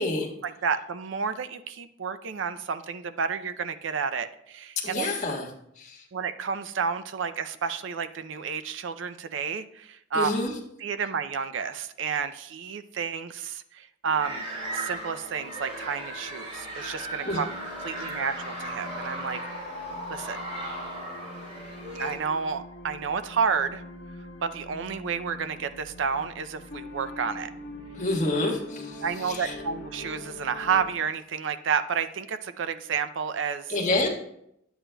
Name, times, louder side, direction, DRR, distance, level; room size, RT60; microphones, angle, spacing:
voice 1, 0.4-5.1 6.1-10.3 10.8-17.5 17.8-19.4 20.1-20.4 22.0-23.8 24.4-27.5 29.0-33.7, right 6 dB, 80° right, 11 dB, 0.5 m, -30 dB
voice 2, 4.8-5.5 5.8-6.0 10.1-10.5 17.2-17.4 27.9-29.5 33.7-34.1, left 2 dB, 40° left, -1 dB, 1.4 m, -28 dB
sound 1, 14.0-30.9, left 1 dB, 70° left, 1.4 m, -44 dB
sound 2, 14.2-22.1, right 1 dB, 35° right, 3.4 m, -37 dB
11.0 x 8.0 x 2.2 m, 0.76 s
head